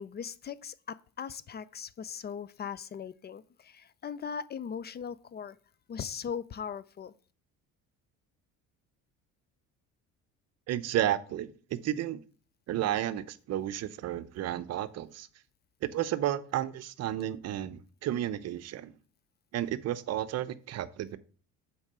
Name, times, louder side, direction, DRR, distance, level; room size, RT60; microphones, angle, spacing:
voice 1, 0.0-5.6 5.9-7.1, left 7 dB, 30° left, 0.5 m, -39 dB
voice 2, 10.7-12.2 12.7-15.3 15.8-18.9 19.5-21.2, right 12 dB, 55° right, 0.8 m, -32 dB
7.1 x 4.6 x 6.7 m
cardioid pair, 105°, 31 cm